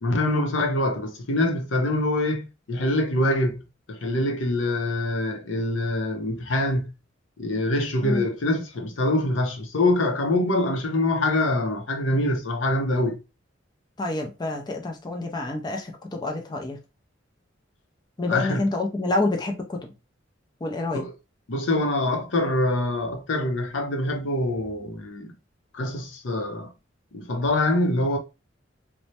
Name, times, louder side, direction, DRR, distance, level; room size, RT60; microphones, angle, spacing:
voice 1, 0.0-7.0 7.4-13.2 18.3-18.6 20.9-21.1 21.5-25.3 25.7-26.7 27.1-28.2, left 1 dB, 80° left, 0.7 m, -25 dB
voice 2, 14.0-16.8 18.2-19.8 20.6-21.0, left 2 dB, 20° left, 0.4 m, -28 dB
3.1 x 2.1 x 2.7 m
head